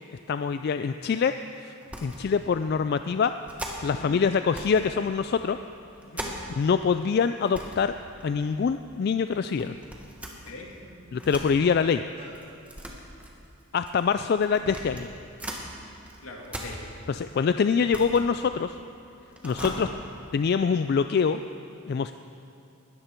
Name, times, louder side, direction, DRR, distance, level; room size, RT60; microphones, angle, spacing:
voice 1, 0.3-1.7 2.0-3.3 3.8-5.6 6.6-8.0 8.2-9.7 11.1-12.0 13.7-15.1 17.1-18.7 19.4-19.9 20.3-21.4 21.9-22.1, left 6 dB, 50° left, 10 dB, 0.3 m, -24 dB
sound 1, 1.8-2.2 2.6-2.7 3.5-4.0 4.5-4.9 5.2-6.7 7.0-7.1 7.4-7.8 8.2-8.8 9.6-11.5 12.3-15.7 16.0-17.3 17.6-18.9 19.3-19.8, equal, 5° right, 1.4 m, -40 dB
voice 2, 3.8-4.2 6.0-6.4 10.3-10.7 16.2-16.8 19.4-19.8, left 2 dB, 75° left, 0 dB, 2.3 m, -41 dB
sound 2, 10.5-12.4, equal, 40° right, 3.0 m, -54 dB
20.0 x 13.5 x 4.5 m, 2.6 s
head